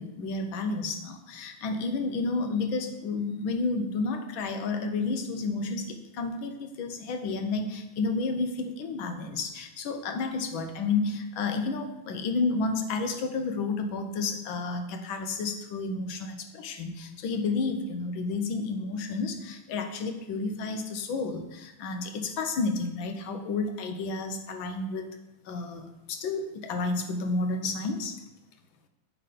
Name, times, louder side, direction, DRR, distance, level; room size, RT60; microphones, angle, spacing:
voice 1, 0.0-25.1 25.4-28.2, left 3 dB, 85° left, 6 dB, 1.6 m, -31 dB
9.1 x 3.8 x 5.1 m, 0.94 s
omnidirectional pair, 2.1 m